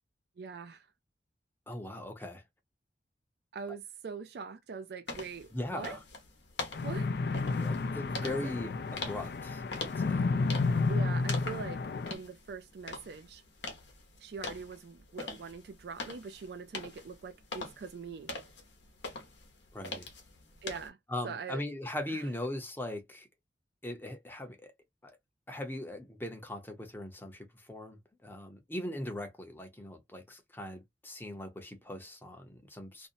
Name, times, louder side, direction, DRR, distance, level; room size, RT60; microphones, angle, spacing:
voice 1, 0.4-0.9 3.5-6.0 6.8-7.1 8.2-8.5 10.9-11.8 12.1-13.4 14.2-18.3 20.6-21.0 21.2-21.6 22.1-22.2, right 5 dB, 65° right, 0.3 m, -42 dB
voice 2, 1.7-2.4 5.5-6.0 7.6-10.3 19.7-20.1 21.1-23.3 23.8-24.7 25.0-25.2 25.5-33.1, left 1 dB, 10° left, 0.6 m, -40 dB
sound 1, 5.1-20.9, left 3 dB, 80° left, 0.8 m, -44 dB
sound 2, 6.7-12.1, left 3 dB, 60° left, 0.3 m, -31 dB
2.6 x 2.1 x 2.5 m
head